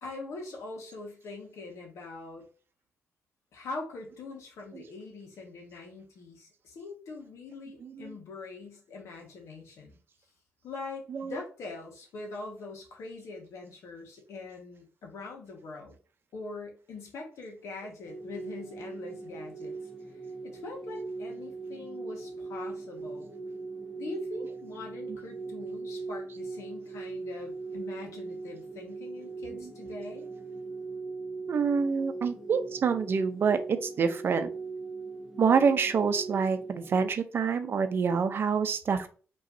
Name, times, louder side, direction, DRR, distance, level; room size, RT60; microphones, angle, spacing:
voice 1, 0.0-2.5 3.5-10.0 10.6-16.0 16.3-19.8 20.4-23.3 24.0-30.3, left 3 dB, 80° left, 1 dB, 1.4 m, -43 dB
voice 2, 7.8-8.2 11.1-11.4 25.1-25.2 29.5-29.7 31.5-34.5 35.4-39.1, right 6 dB, 50° right, 9 dB, 0.6 m, -27 dB
sound 1, 18.0-37.1, right 3 dB, 10° right, 0.8 m, -40 dB
5.5 x 3.1 x 2.7 m, 0.38 s
cardioid pair, 135°, 5 cm